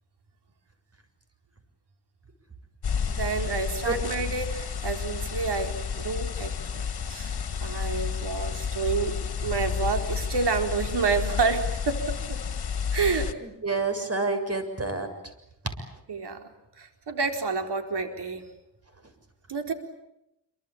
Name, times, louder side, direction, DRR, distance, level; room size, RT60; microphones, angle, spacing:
sound 1, 2.8-13.3, left 6 dB, 65° left, 2.1 m, -31 dB
voice 1, 3.1-6.8 7.1-12.4 12.9-13.3 16.1-16.5 16.8-18.5 19.5-19.7, right 4 dB, 70° right, 6 dB, 4.3 m, -29 dB
voice 2, 13.4-15.1, right 3 dB, 35° right, 8 dB, 7.0 m, -28 dB
27.5 x 24.5 x 8.8 m, 0.85 s
cardioid pair, 60°, 41 cm